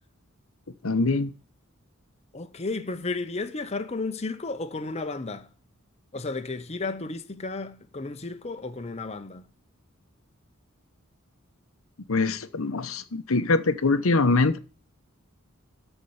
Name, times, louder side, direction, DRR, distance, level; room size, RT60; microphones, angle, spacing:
voice 1, 0.8-1.3 12.1-14.6, left 3 dB, 75° left, 0.9 m, -23 dB
voice 2, 2.3-5.5 6.1-9.4, left 3 dB, 30° left, 0.8 m, -33 dB
13.5 x 4.6 x 8.6 m
head